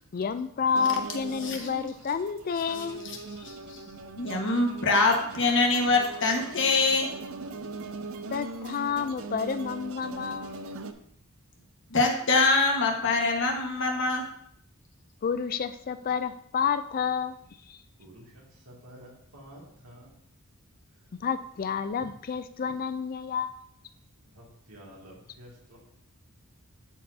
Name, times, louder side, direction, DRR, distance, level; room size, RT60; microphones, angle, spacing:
voice 1, 0.1-3.0 8.3-10.5 15.2-17.4 17.7-17.8 21.2-23.6, left 6 dB, 40° left, 11 dB, 0.3 m, -30 dB
sound 1, 0.6-10.9, right 3 dB, 65° right, 0.5 m, -40 dB
voice 2, 1.4-1.7 2.7-3.8 4.2-7.1 11.9-14.3, left 3 dB, 55° left, 1 dB, 1.4 m, -25 dB
voice 3, 18.0-20.2 22.0-22.1 24.2-25.8, equal, 85° right, -3 dB, 2.4 m, -50 dB
12.5 x 4.5 x 2.7 m, 0.70 s
head